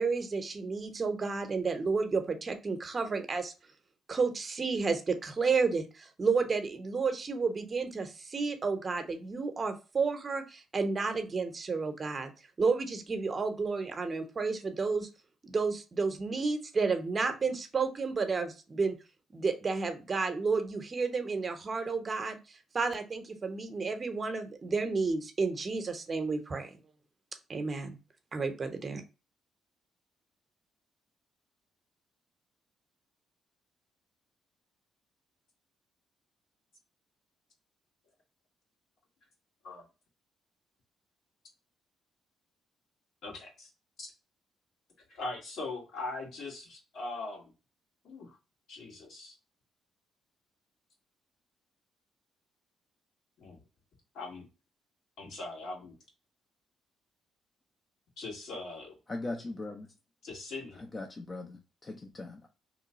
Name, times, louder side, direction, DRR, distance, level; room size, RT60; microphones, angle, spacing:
voice 1, 0.0-3.5 4.1-12.3 12.6-15.1 15.4-18.9 19.3-26.7 27.5-28.0 28.3-29.0, right 4 dB, 35° right, 0.7 m, -31 dB
voice 2, 43.2-43.7 44.0-44.1 45.1-47.5 48.0-48.3 48.7-49.3 53.4-53.6 54.1-54.4 55.2-55.9 58.2-58.9 60.2-60.8, left 2 dB, 75° left, 1.6 m, -40 dB
voice 3, 59.1-59.9 60.9-62.5, left 2 dB, 30° left, 0.4 m, -39 dB
3.0 x 2.2 x 3.9 m
cardioid pair, 90°, 0 cm